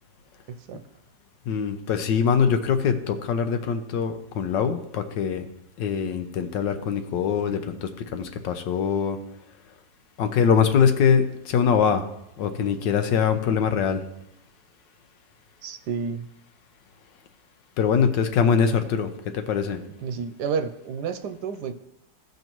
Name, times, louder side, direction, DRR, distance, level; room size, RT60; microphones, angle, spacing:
voice 1, 0.5-0.8 15.6-16.3 20.0-21.7, right 6 dB, 75° right, 8 dB, 1.1 m, -30 dB
voice 2, 1.5-5.5 5.8-9.2 10.2-12.1 12.4-14.0 17.8-19.8, left 7 dB, 80° left, 8 dB, 1.5 m, -23 dB
15.5 x 5.4 x 3.0 m, 0.81 s
omnidirectional pair, 1.9 m